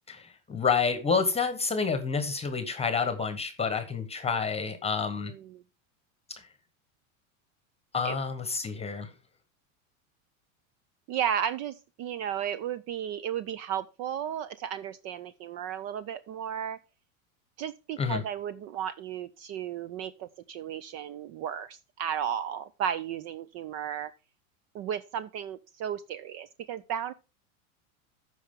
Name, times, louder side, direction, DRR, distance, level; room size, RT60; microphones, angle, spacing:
voice 1, 0.1-5.3 7.9-9.1 18.0-18.2, left 5 dB, 15° left, 1.1 m, -29 dB
voice 2, 5.2-5.6 8.0-8.2 11.1-16.8 17.6-24.1 24.7-27.1, right 9 dB, 40° right, 0.4 m, -34 dB
13.5 x 4.8 x 3.7 m
supercardioid pair, 120°, 41 cm